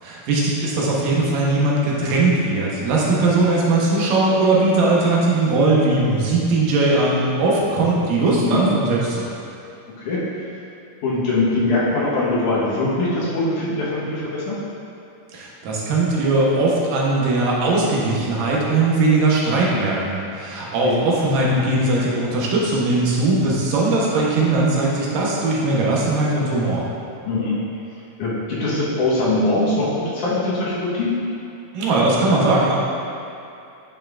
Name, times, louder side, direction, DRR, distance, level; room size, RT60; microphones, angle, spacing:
voice 1, 0.0-9.2 15.3-26.9 31.7-32.8, right 2 dB, 85° right, -4 dB, 2.7 m, -19 dB
voice 2, 8.4-8.8 10.0-10.2 11.0-14.6 20.5-21.0 27.3-27.6 28.2-31.1, left 2 dB, 70° left, -7 dB, 2.6 m, -22 dB
9.9 x 5.5 x 2.4 m, 2.6 s
omnidirectional pair, 3.8 m